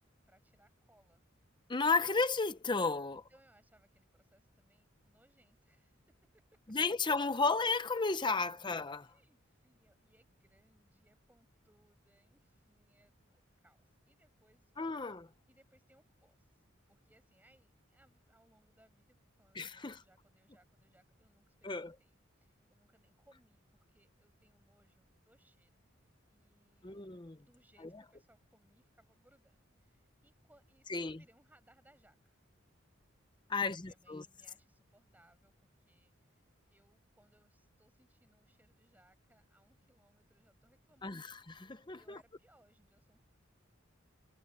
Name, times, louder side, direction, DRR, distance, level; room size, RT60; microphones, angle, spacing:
voice 1, 0.2-1.2 3.1-6.6 8.4-8.7 9.0-15.2 15.5-32.4 33.6-43.2, right 1 dB, 10° right, 7.4 m, -70 dB
voice 2, 1.7-3.2 6.7-9.1 14.8-15.3 19.6-20.0 21.6-21.9 26.8-27.4 30.9-31.2 33.5-34.2 41.0-42.2, left 4 dB, 25° left, 0.7 m, -33 dB
head